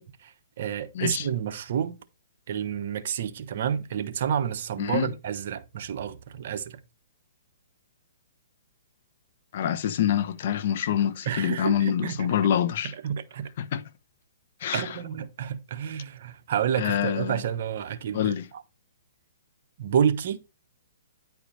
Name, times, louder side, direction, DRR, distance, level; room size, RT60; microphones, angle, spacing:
voice 1, 0.0-2.0 2.5-6.8 11.3-12.4 12.8-13.5 14.7-18.6 19.8-20.4, right 8 dB, 55° right, 1.0 m, -29 dB
voice 2, 9.5-12.9 13.6-13.8 14.6-14.8 16.8-17.4 18.1-18.4, left 9 dB, 50° left, 0.9 m, -26 dB
10.0 x 4.8 x 4.0 m
hypercardioid pair, 150°, 0 cm